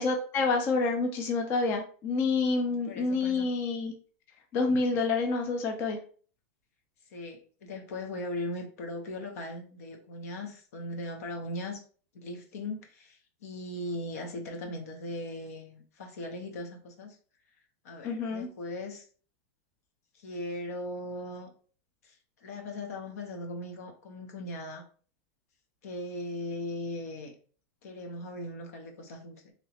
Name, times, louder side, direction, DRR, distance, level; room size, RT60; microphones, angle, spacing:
voice 1, 0.0-3.9 4.5-6.0 18.0-18.5, left 3 dB, 30° left, 4 dB, 0.4 m, -28 dB
voice 2, 2.7-3.5 7.1-11.8 12.1-17.2 17.8-19.0 20.1-21.5 22.0-24.8 25.8-27.3 27.8-29.5, left 1 dB, 75° left, 4 dB, 0.9 m, -39 dB
3.1 x 2.9 x 2.8 m, 0.42 s
supercardioid pair, 170°, 8 cm